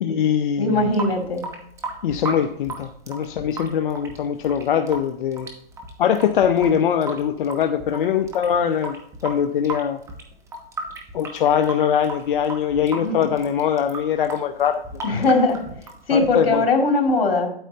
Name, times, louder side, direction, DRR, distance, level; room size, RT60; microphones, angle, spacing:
voice 1, 0.0-0.9 2.0-5.5 6.0-9.0 9.2-10.0 11.1-14.8 16.1-16.6, left 8 dB, 60° left, 6 dB, 0.7 m, -22 dB
voice 2, 0.6-1.5 13.0-13.3 15.0-15.6 16.1-17.5, left 2 dB, 80° left, 3 dB, 2.5 m, -20 dB
Water tap faucet / Sink (filling or washing) / Drip, 0.7-16.7, right 2 dB, 10° right, 1.0 m, -36 dB
9.0 x 8.6 x 2.8 m, 0.71 s
hypercardioid pair, 145°, 30 cm